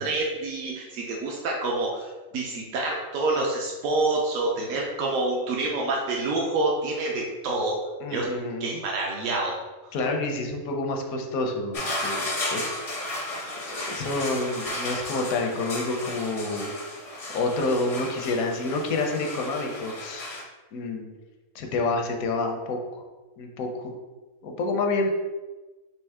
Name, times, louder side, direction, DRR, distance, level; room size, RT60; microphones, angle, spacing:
voice 1, 0.0-7.8 8.1-8.3 8.6-9.5, right 2 dB, 70° right, -2 dB, 1.0 m, -27 dB
voice 2, 8.0-8.8 9.9-12.8 13.7-16.7 17.3-20.4 20.7-21.1 21.5-22.8 23.4-23.9 24.4-25.1, left 2 dB, 80° left, 3 dB, 1.1 m, -28 dB
sound 1, 11.7-20.4, left 1 dB, 45° left, 0.4 m, -34 dB
4.4 x 3.0 x 3.5 m, 1.2 s
omnidirectional pair, 1.5 m